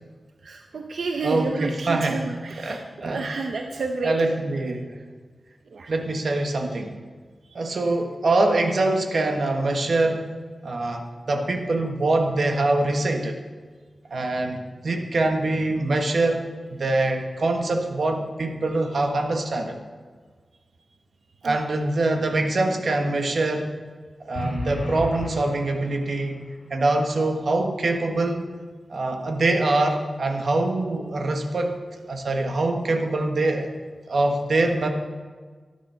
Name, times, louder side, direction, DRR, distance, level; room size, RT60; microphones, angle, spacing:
voice 1, 0.4-4.3 5.7-5.9 7.4-7.6 21.4-21.9, right 3 dB, 80° right, 3 dB, 0.9 m, -30 dB
voice 2, 1.2-2.2 2.6-3.5 4.0-5.0 5.9-7.0 7.5-10.3 10.6-13.4 14.1-16.4 16.7-19.8 21.4-23.7 24.2-26.4 26.7-28.5 28.9-31.7 32.1-33.7 34.1-34.9, right 2 dB, 55° right, 4 dB, 1.4 m, -24 dB
sound 1, 24.3-26.4, left 1 dB, 75° left, 2.8 m, -33 dB
12.5 x 11.0 x 5.7 m, 1.5 s
wide cardioid pair, 150°, 0 cm